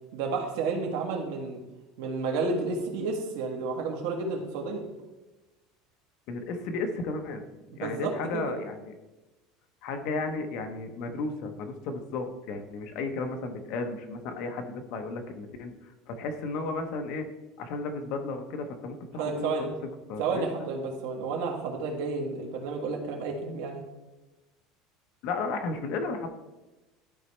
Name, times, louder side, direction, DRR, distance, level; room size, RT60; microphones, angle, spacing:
voice 1, 0.1-1.6 2.0-4.8 7.8-8.6 19.2-19.7 20.2-23.8, right 4 dB, 70° right, 2 dB, 1.5 m, -31 dB
voice 2, 6.3-7.4 7.8-8.9 9.8-15.7 16.1-17.3 17.6-19.7 20.1-20.5 25.2-26.3, left 3 dB, 50° left, 5 dB, 0.9 m, -34 dB
12.0 x 4.1 x 3.3 m, 1.1 s
cardioid pair, 175°, 0 cm